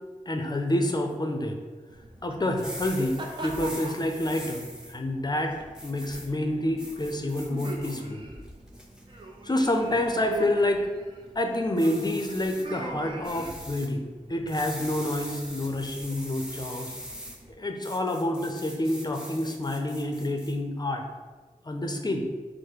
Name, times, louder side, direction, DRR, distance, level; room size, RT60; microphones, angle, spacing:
voice 1, 0.3-1.6 2.2-5.5 5.8-8.2 9.4-10.9 11.4-17.0 17.5-21.0 21.6-22.3, left 1 dB, 30° left, 4 dB, 0.6 m, -28 dB
sound 1, 1.9-17.5, right 2 dB, 35° right, 0.6 m, -43 dB
sound 2, 2.5-4.9 5.7-6.3 6.8-8.0 8.5-9.0 9.6-9.9 11.8-12.6 13.2-13.9 14.5-17.4 17.8-20.5, equal, 5° right, 0.8 m, -42 dB
4.8 x 2.1 x 4.5 m, 1.4 s
cardioid pair, 55°, 14 cm